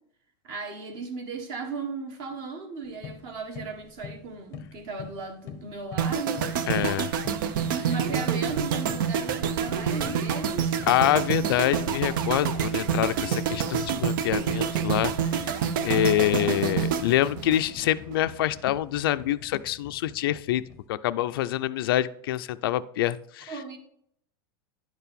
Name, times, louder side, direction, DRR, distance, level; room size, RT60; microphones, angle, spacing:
voice 1, 0.4-6.4 7.8-10.9 15.8-16.6 23.5-23.8, right 4 dB, 35° right, 6 dB, 1.3 m, -36 dB
sound 1, 2.8-20.9, left 8 dB, 25° left, 0.7 m, -46 dB
sound 2, 6.0-18.2 18.4-18.7, right 7 dB, 60° right, 0.7 m, -27 dB
voice 2, 6.7-7.1 10.9-15.1 15.8-20.6 20.9-23.5, left 13 dB, 70° left, 12 dB, 0.4 m, -26 dB
10.5 x 4.7 x 5.2 m, 0.67 s
supercardioid pair, 180°, 13 cm